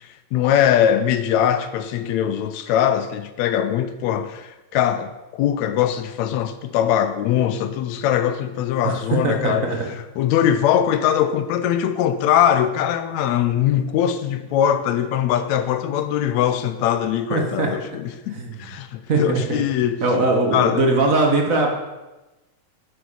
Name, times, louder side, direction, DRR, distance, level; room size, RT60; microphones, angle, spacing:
voice 1, 0.0-9.7 10.2-20.0 20.5-20.9, left 10 dB, 80° left, 1.6 m, -21 dB
voice 2, 9.2-9.8 17.3-17.7 18.3-18.5 19.1-19.6 20.0-21.7, right 2 dB, 55° right, 0.9 m, -20 dB
9.6 x 8.1 x 6.8 m
omnidirectional pair, 3.8 m